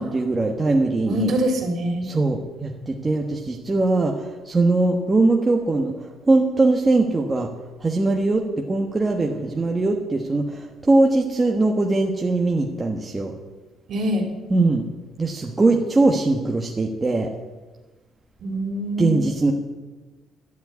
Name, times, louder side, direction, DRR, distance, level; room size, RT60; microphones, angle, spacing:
voice 1, 0.0-1.3 2.0-7.5 7.8-13.3 14.5-14.9 15.2-17.3 19.0-19.5, right 2 dB, 20° right, 1 dB, 1.2 m, -21 dB
voice 2, 1.0-2.1 13.9-14.2 18.4-19.1, right 1 dB, 50° right, 1 dB, 3.4 m, -24 dB
12.0 x 7.5 x 9.5 m, 1.2 s
cardioid pair, 125°, 0 cm